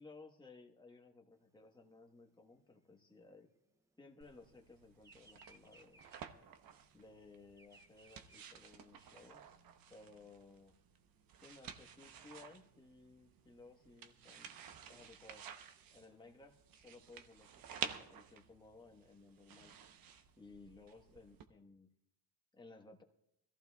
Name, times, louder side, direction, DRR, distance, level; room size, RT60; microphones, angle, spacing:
voice 1, 0.0-3.5 4.0-6.0 6.9-9.4 9.9-10.7 11.4-14.5 14.9-15.4 15.9-19.7 20.4-21.9 22.5-23.0, left 3 dB, 10° left, 2 dB, 1.2 m, -59 dB
Bird vocalization bird call bird song, 1.4-4.3 4.6-9.3, right 2 dB, 10° right, 0.5 m, -65 dB
sound 1, 4.2-21.4, right 8 dB, 60° right, 0.9 m, -52 dB
24.0 x 14.5 x 2.3 m, 0.82 s
cardioid pair, 155°, 39 cm